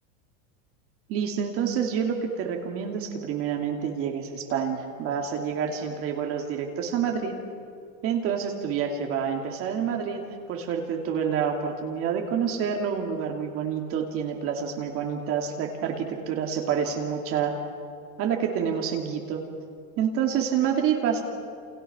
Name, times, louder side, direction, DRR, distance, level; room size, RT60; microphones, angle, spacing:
voice 1, 1.1-7.3 8.0-10.2 10.5-17.5 18.2-19.4 20.0-21.2, right 7 dB, 35° right, 3 dB, 2.5 m, -28 dB
29.5 x 28.5 x 6.0 m, 2.4 s
supercardioid pair, 170°, 41 cm